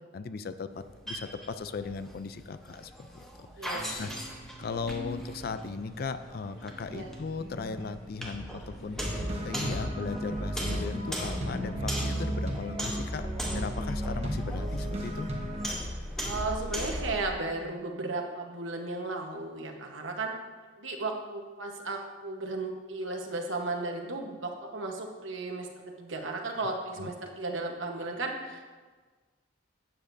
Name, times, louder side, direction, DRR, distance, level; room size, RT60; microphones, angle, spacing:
voice 1, 0.1-3.7 4.0-4.1 4.6-9.0 9.4-13.3 13.5-15.3 27.0-27.1, left 4 dB, 50° left, 11 dB, 0.4 m, -37 dB
sound 1, 0.7-17.3, equal, ahead, 1.0 m, -38 dB
sound 2, 3.6-10.8, right 1 dB, 70° left, 2.4 m, -47 dB
voice 2, 3.6-4.1 6.9-7.1 16.2-20.3 20.8-25.7 26.0-28.7, right 2 dB, 70° right, 2 dB, 1.1 m, -35 dB
sound 3, 9.0-15.7, equal, 30° right, 1.1 m, -34 dB
12.0 x 8.6 x 2.7 m, 1.4 s
head